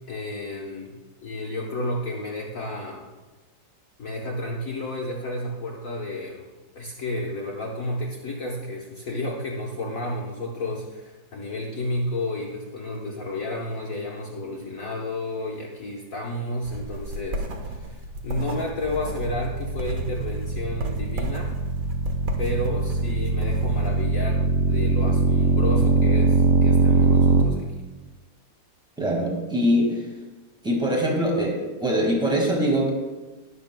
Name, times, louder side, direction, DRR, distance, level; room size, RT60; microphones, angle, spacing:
voice 1, 0.1-0.9 1.2-3.1 4.0-6.5 6.7-21.6 22.4-27.8, left 1 dB, 50° left, -2 dB, 1.2 m, -31 dB
sound 1, 16.6-24.0, right 1 dB, 50° right, 1.3 m, -35 dB
sound 2, 18.8-27.4, right 3 dB, 80° right, 0.5 m, -22 dB
voice 2, 29.0-30.0 30.6-32.9, equal, 5° right, -1 dB, 1.7 m, -23 dB
20.0 x 6.9 x 2.2 m, 1.2 s
omnidirectional pair, 2.1 m